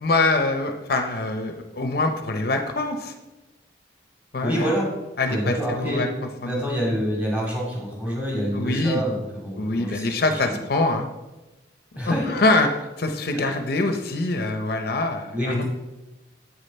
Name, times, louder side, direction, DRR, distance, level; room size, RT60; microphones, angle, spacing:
voice 1, 0.0-3.1 4.3-4.7 5.2-6.1 6.4-6.6 8.5-9.0 9.6-11.1 12.0-12.7 13.0-15.6, left 2 dB, 55° left, 6 dB, 0.6 m, -24 dB
voice 2, 4.4-4.9 5.3-6.0 6.4-10.4 11.9-12.2 13.3-13.4 15.3-15.6, equal, 10° right, -3 dB, 2.2 m, -27 dB
8.2 x 6.6 x 4.2 m, 1.1 s
head